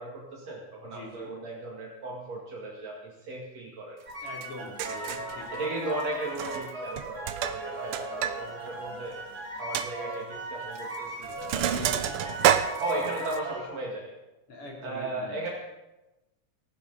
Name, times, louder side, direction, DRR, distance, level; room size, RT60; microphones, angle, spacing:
voice 1, 0.0-4.0 4.9-5.2 5.5-9.2 9.5-12.5 12.8-14.1 14.8-15.5, right 2 dB, 60° right, -3 dB, 3.3 m, -36 dB
voice 2, 0.8-1.3 4.2-4.8 5.1-5.5 11.7-12.1 14.5-15.4, left 2 dB, 50° left, -2 dB, 4.0 m, -43 dB
sound 1, 4.1-13.6, right 2 dB, 35° right, 2.3 m, -38 dB
Sink (filling or washing), 4.4-4.5 4.8-5.3 6.3-6.7 7.0-8.4 8.7-8.8 9.2-9.3 9.7-9.9 10.8-11.0 11.2-13.4, right 10 dB, 80° right, 1.2 m, -28 dB
19.0 x 15.0 x 4.1 m, 1.0 s
omnidirectional pair, 3.4 m